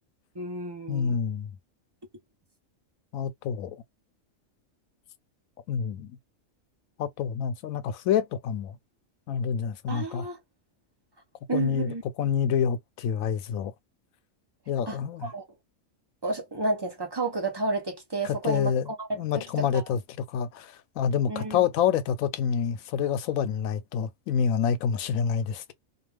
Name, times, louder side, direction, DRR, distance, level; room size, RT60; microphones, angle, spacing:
voice 1, 0.3-1.2 9.9-10.4 11.5-12.0 14.9-15.4 16.2-18.7 19.3-19.7 21.3-21.6, right 3 dB, 25° right, 0.6 m, -31 dB
voice 2, 0.9-1.5 3.1-3.8 5.7-6.2 7.0-8.8 9.3-10.3 11.5-13.7 14.7-15.3 18.2-20.0 20.3-25.7, left 7 dB, 85° left, 1.0 m, -27 dB
2.4 x 2.4 x 3.2 m
omnidirectional pair, 1.4 m